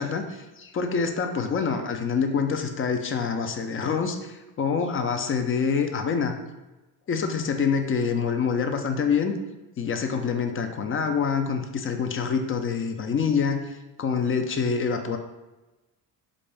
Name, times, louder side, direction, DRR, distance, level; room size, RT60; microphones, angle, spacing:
voice 1, 0.0-6.3 7.1-9.3 9.8-13.6 14.0-15.2, left 6 dB, 30° left, 6 dB, 0.4 m, -26 dB
3.6 x 2.6 x 3.3 m, 1.1 s
hypercardioid pair, 60°, 47 cm